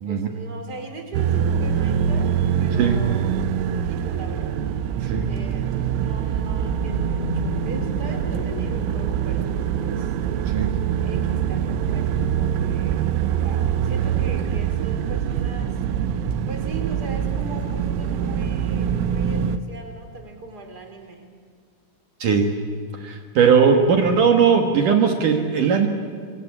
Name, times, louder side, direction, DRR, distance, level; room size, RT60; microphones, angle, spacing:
voice 1, 0.1-2.3 2.6-4.6 5.2-9.5 9.8-10.1 11.0-15.8 16.5-21.2 23.7-24.0, right 3 dB, 20° right, 4 dB, 3.4 m, -39 dB
sound 1, 1.1-19.6, right 8 dB, 85° right, 3.8 m, -24 dB
sound 2, 6.8-13.4, left 1 dB, 70° left, 8.2 m, -35 dB
voice 2, 22.2-22.6 23.0-25.9, right 6 dB, 65° right, 5 dB, 2.1 m, -18 dB
26.5 x 26.0 x 8.7 m, 2.1 s
omnidirectional pair, 6.0 m